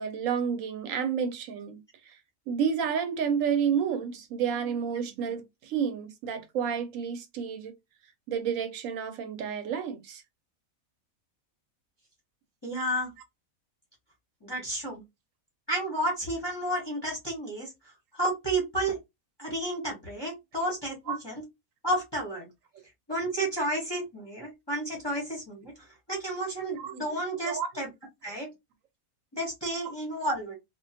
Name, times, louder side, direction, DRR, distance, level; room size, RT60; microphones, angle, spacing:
voice 1, 0.0-1.8 2.1-2.2 2.5-7.7 8.3-10.2 21.1-21.2 26.7-27.2 27.5-27.7, right 7 dB, 70° right, 0.9 m, -30 dB
voice 2, 12.6-13.1 14.4-15.0 15.7-17.7 18.1-19.0 19.4-21.4 21.8-22.5 23.1-25.7 26.1-27.9 28.2-28.5 29.3-30.6, right 1 dB, 25° left, 0.6 m, -31 dB
2.3 x 2.2 x 2.6 m
omnidirectional pair, 1.5 m